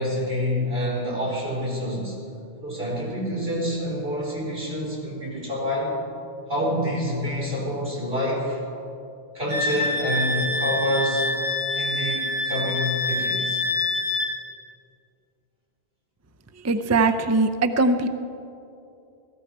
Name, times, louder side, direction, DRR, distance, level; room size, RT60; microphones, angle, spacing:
voice 1, 0.0-2.2 2.6-6.0 6.5-8.6 9.3-11.3 11.7-13.6, left 1 dB, 75° right, -5 dB, 4.5 m, -27 dB
Wind instrument woodwind instrument, 9.5-14.3, left 2 dB, 45° right, 4.8 m, -26 dB
voice 2, 16.6-18.1, right 3 dB, 20° right, 7 dB, 0.4 m, -21 dB
16.5 x 15.0 x 4.7 m, 2.6 s
omnidirectional pair, 1.0 m